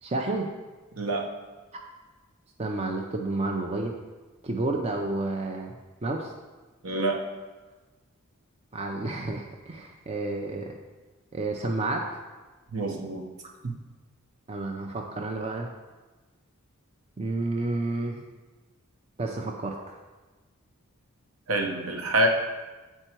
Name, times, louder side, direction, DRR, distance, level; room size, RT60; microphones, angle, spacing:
voice 1, 0.0-0.5 2.6-4.0 4.4-6.3 8.7-10.7 11.3-12.1 14.5-15.7 17.2-18.3 19.2-20.0, right 2 dB, 30° right, 1 dB, 0.5 m, -30 dB
voice 2, 1.0-1.3 6.8-7.2 12.7-13.3 13.6-13.7 21.5-22.3, right 1 dB, 70° right, 2 dB, 1.0 m, -26 dB
7.9 x 4.5 x 4.4 m, 1.2 s
head